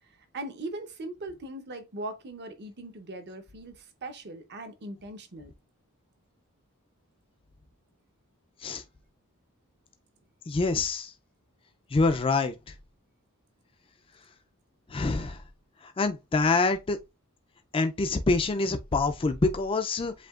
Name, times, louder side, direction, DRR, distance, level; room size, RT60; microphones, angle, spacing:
voice 1, 0.0-5.5, right 2 dB, 50° right, 0.8 m, -40 dB
voice 2, 10.5-11.1 11.9-12.5 14.9-15.4 15.8-17.0 17.7-20.1, left 3 dB, 25° left, 0.4 m, -26 dB
7.5 x 2.8 x 2.4 m
head